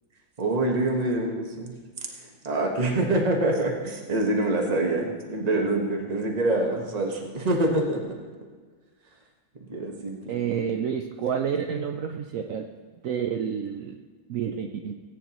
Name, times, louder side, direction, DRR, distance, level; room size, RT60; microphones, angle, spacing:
voice 1, 0.4-1.7 2.4-8.0 9.7-10.3, right 2 dB, 25° right, 1 dB, 1.2 m, -25 dB
voice 2, 10.3-12.7 13.0-14.0 14.3-14.9, right 7 dB, 80° right, 4 dB, 0.7 m, -29 dB
18.0 x 9.3 x 3.0 m, 1.4 s
omnidirectional pair, 2.1 m